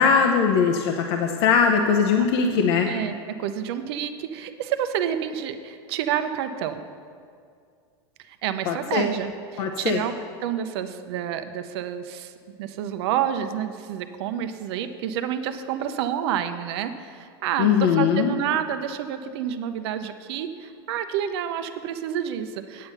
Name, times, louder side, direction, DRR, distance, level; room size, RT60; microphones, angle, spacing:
voice 1, 0.0-2.9 8.7-9.1 9.6-10.0 17.6-18.3, left 6 dB, 65° left, 3 dB, 0.8 m, -20 dB
voice 2, 2.9-6.8 8.3-10.1 10.4-12.3 12.6-22.9, right 9 dB, 70° right, 9 dB, 0.7 m, -29 dB
9.0 x 8.6 x 5.6 m, 2.2 s
supercardioid pair, 120°, 14 cm